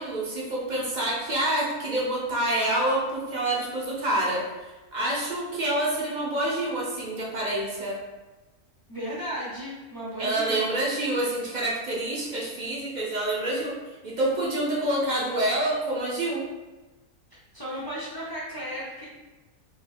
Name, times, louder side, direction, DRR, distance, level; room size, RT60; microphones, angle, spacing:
voice 1, 0.0-8.0 10.2-13.8 14.0-16.5, right 1 dB, 50° right, -4 dB, 0.5 m, -27 dB
voice 2, 8.9-10.6 17.5-19.1, equal, 30° left, -8 dB, 0.4 m, -34 dB
3.5 x 2.7 x 2.6 m, 1.2 s
omnidirectional pair, 1.5 m